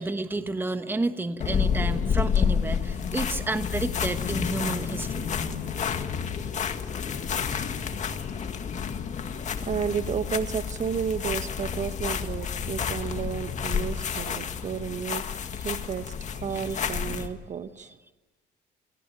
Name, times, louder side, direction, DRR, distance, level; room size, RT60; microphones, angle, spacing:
voice 1, 0.0-5.2 16.5-16.6, right 2 dB, 10° right, 1.2 m, -30 dB
sound 1, 1.4-17.3, left 7 dB, 45° left, 2.0 m, -30 dB
voice 2, 9.2-15.4 15.6-17.9, right 7 dB, 45° right, 1.4 m, -32 dB
29.0 x 18.5 x 9.2 m
cardioid pair, 110°, 17 cm